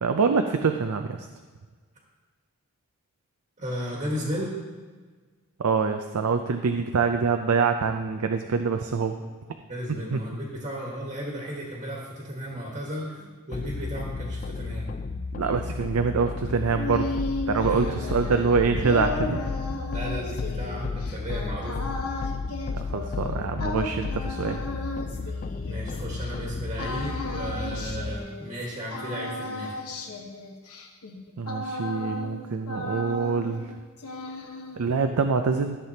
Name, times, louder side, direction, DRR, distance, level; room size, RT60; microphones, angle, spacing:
voice 1, 0.0-1.2 5.6-9.2 10.1-10.2 15.3-17.0 17.5-19.4 22.7-24.6 31.4-33.6 34.8-35.8, right 5 dB, 75° right, 6 dB, 0.5 m, -25 dB
voice 2, 3.6-4.5 9.1-9.2 9.7-14.9 17.5-18.0 19.3-21.8 25.2-25.3 25.7-29.8, equal, 30° right, -3 dB, 1.5 m, -34 dB
sound 1, 13.5-28.2, left 4 dB, 35° left, 0.3 m, -33 dB
sound 2, 16.5-26.3 26.8-28.7 28.9-32.4 32.7-33.7 34.0-35.0, left 2 dB, 90° left, 1.1 m, -35 dB
13.5 x 7.5 x 2.8 m, 1.5 s
head